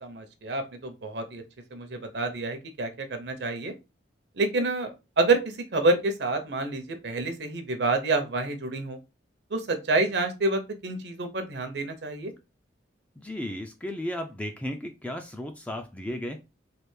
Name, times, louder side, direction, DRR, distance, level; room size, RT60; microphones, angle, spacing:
voice 1, 0.0-1.4 1.7-3.7 4.4-9.0 9.5-12.3, right 2 dB, 60° right, 7 dB, 0.6 m, -28 dB
voice 2, 13.2-16.4, left 1 dB, 5° left, 5 dB, 0.3 m, -34 dB
3.3 x 2.4 x 3.1 m, 0.27 s
head